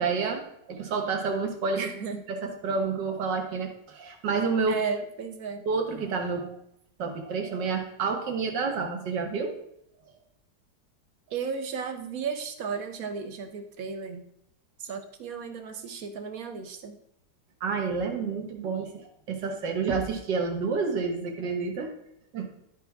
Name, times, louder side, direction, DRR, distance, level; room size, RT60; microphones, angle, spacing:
voice 1, 0.0-1.9 2.3-4.8 5.7-6.6 7.0-9.6 17.6-21.9 22.3-22.5, right 4 dB, 75° right, 3 dB, 1.9 m, -29 dB
voice 2, 1.7-2.2 4.7-5.7 11.3-14.2 14.8-17.0, right 5 dB, 55° right, 6 dB, 1.2 m, -34 dB
12.5 x 4.8 x 3.5 m, 0.75 s
omnidirectional pair, 1.9 m